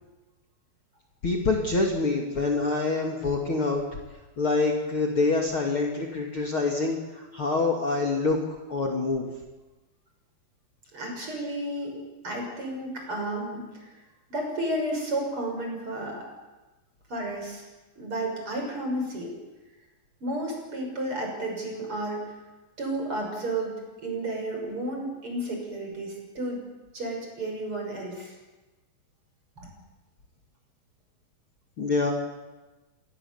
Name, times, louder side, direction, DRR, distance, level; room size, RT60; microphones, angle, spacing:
voice 1, 1.2-3.8 4.4-8.4 8.7-9.3 31.8-32.1, left 3 dB, 40° left, 0 dB, 2.8 m, -26 dB
voice 2, 10.9-13.9 14.3-16.3 17.1-17.6 18.0-19.3 20.2-22.3 22.8-23.7 24.0-26.6 26.9-28.3, right 1 dB, 35° right, 1 dB, 6.9 m, -32 dB
26.5 x 19.0 x 7.2 m, 1.1 s
omnidirectional pair, 4.1 m